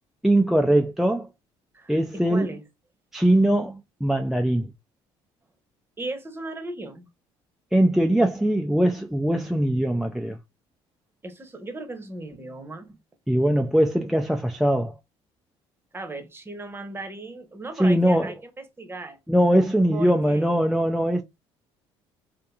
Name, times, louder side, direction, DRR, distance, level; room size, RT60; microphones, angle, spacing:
voice 1, 0.2-1.3 1.9-2.5 3.1-4.7 7.7-10.4 13.3-14.9 17.8-18.3 19.3-21.2, right 1 dB, ahead, 0.3 m, -21 dB
voice 2, 1.7-2.6 6.0-7.1 11.2-13.0 15.9-19.2 19.9-20.5, right 2 dB, 20° right, 0.8 m, -37 dB
2.8 x 2.5 x 2.3 m
supercardioid pair, 75°, 12 cm